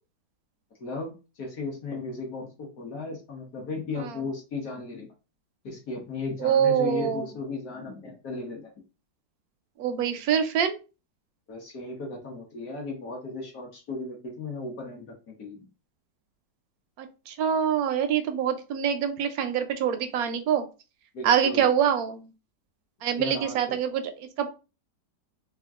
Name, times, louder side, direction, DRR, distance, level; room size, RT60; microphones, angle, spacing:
voice 1, 0.8-5.1 5.6-8.7 11.5-15.7 21.1-21.7 23.2-23.6, left 3 dB, 55° left, 1 dB, 1.4 m, -36 dB
voice 2, 6.4-7.3 9.8-10.8 17.0-20.6 21.2-22.3 23.0-24.5, right 8 dB, 70° right, 8 dB, 0.9 m, -25 dB
3.6 x 2.3 x 3.5 m, 0.31 s
omnidirectional pair, 1.9 m